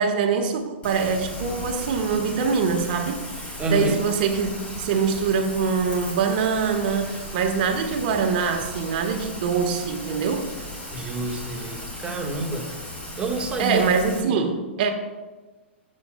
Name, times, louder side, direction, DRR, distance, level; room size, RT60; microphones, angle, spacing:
voice 1, 0.0-10.5 13.6-14.9, right 5 dB, 50° right, 5 dB, 1.3 m, -24 dB
Rain, 0.8-14.2, left 1 dB, 20° left, 2.3 m, -37 dB
voice 2, 3.6-4.0 10.9-12.7 13.2-13.8 14.2-14.4, right 3 dB, 15° right, 0 dB, 1.5 m, -28 dB
16.5 x 7.5 x 2.2 m, 1.3 s
figure-of-eight pair, 110°, 7 cm